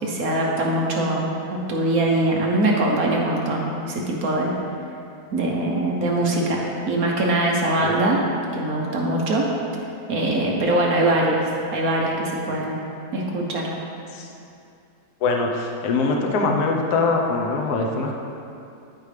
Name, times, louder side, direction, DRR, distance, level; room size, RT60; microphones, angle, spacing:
voice 1, 0.0-4.5 5.3-8.2 8.5-9.5 10.1-12.8 13.1-13.7, right 1 dB, 60° right, -2 dB, 1.4 m, -22 dB
voice 2, 15.2-18.2, left 3 dB, 65° left, 0 dB, 1.3 m, -22 dB
11.5 x 5.2 x 3.3 m, 2.6 s
omnidirectional pair, 1.9 m